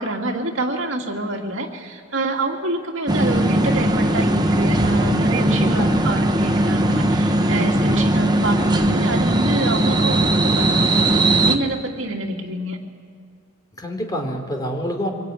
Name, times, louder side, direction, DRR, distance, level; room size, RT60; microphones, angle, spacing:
voice 1, 0.0-12.8, right 2 dB, 75° right, 1 dB, 2.5 m, -26 dB
sound 1, 3.1-11.6, right 1 dB, 20° right, 1.1 m, -19 dB
voice 2, 5.5-6.2 7.8-8.1 13.8-15.1, equal, 20° left, 2 dB, 3.2 m, -28 dB
24.5 x 19.0 x 9.2 m, 2.2 s
head